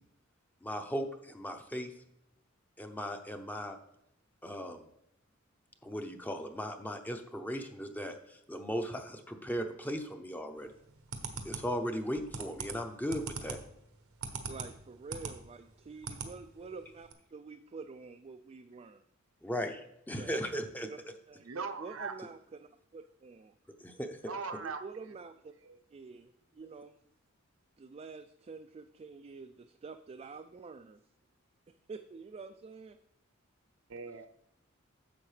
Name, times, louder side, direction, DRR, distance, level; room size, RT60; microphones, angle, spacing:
voice 1, 0.6-1.9 2.8-3.8 4.4-4.8 5.8-10.7 11.4-13.6 19.4-20.9 23.8-24.2, equal, 10° left, 6 dB, 0.6 m, -37 dB
sound 1, 10.7-15.4 15.7-16.3 16.7-16.8 17.0-17.1, right 5 dB, 85° right, 1.0 m, -41 dB
voice 2, 14.5-19.0 20.2-20.3 20.8-21.0 21.3-21.5 21.8-23.5 24.6-25.5 25.9-26.9 27.8-31.0 31.9-33.0, right 4 dB, 30° right, 6 dB, 0.3 m, -48 dB
voice 3, 21.4-22.2 24.3-24.8 25.6-25.8 33.9-34.3, right 4 dB, 70° right, 7 dB, 0.7 m, -39 dB
10.0 x 7.1 x 3.3 m, 0.79 s
head